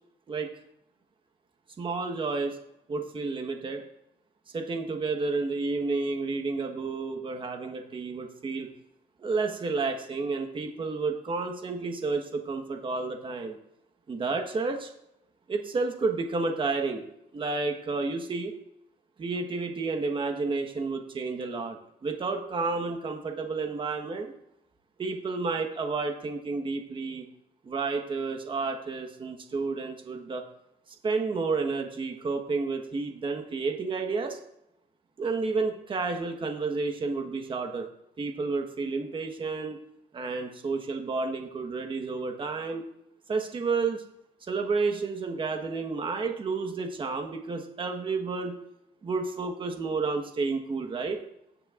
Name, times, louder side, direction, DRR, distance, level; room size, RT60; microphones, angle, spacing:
voice 1, 1.8-2.6 2.9-3.8 4.5-8.7 9.2-13.6 14.1-14.9 15.5-17.0 17.3-18.5 19.2-24.3 25.0-27.2 27.6-30.4 31.0-34.4 35.2-37.9 38.2-39.8 40.1-42.8 43.3-44.0 44.4-48.6 49.0-51.2, right 4 dB, 30° right, 4 dB, 1.3 m, -31 dB
18.5 x 6.3 x 2.5 m, 0.80 s
cardioid pair, 110°, 17 cm